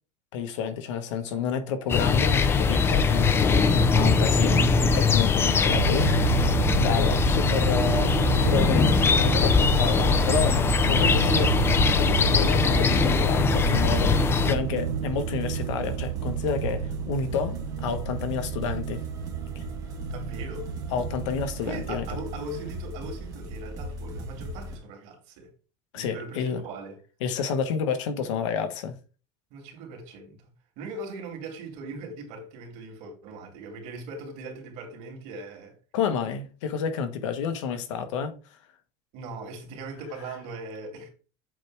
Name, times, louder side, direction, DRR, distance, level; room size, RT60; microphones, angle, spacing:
voice 1, 0.3-11.5 11.9-19.0 19.5-19.6 20.9-22.1 25.9-26.6 27.2-28.9 35.9-38.4, left 6 dB, 85° left, 1.3 m, -30 dB
sound 1, 1.9-14.6, left 5 dB, 15° left, 0.4 m, -22 dB
sound 2, 5.7-22.8, right 10 dB, 70° right, 0.6 m, -30 dB
sound 3, 8.2-24.8, equal, 25° right, 1.5 m, -38 dB
voice 2, 10.9-11.5 20.0-20.7 21.6-25.5 25.9-27.0 29.5-30.4 30.8-35.7 39.1-41.1, right 3 dB, 55° right, 2.6 m, -39 dB
7.7 x 3.3 x 4.8 m
supercardioid pair, 155°, 15 cm